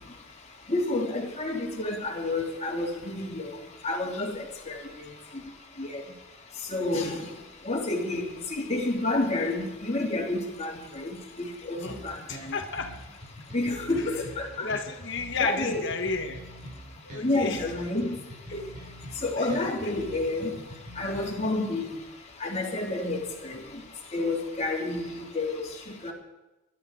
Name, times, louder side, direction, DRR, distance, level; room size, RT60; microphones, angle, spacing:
voice 1, 0.7-3.5 3.8-4.4 4.7-4.8 5.8-6.0 6.7-7.2 7.6-8.2 8.6-11.1 11.4-12.1 13.5-14.5 15.4-15.8 17.2-18.2 18.5-18.6 19.2-20.5 21.0-21.9 22.4-23.6 24.1-25.6 26.0-26.1, left 2 dB, 30° left, 0 dB, 3.1 m, -29 dB
sound 1, 11.9-21.5, equal, 35° right, 5.2 m, -45 dB
voice 2, 12.3-12.9 13.9-14.1 14.6-16.4 17.0-17.6 19.4-19.9, left 4 dB, 55° left, 5 dB, 1.4 m, -32 dB
22.0 x 12.0 x 4.8 m, 1.0 s
head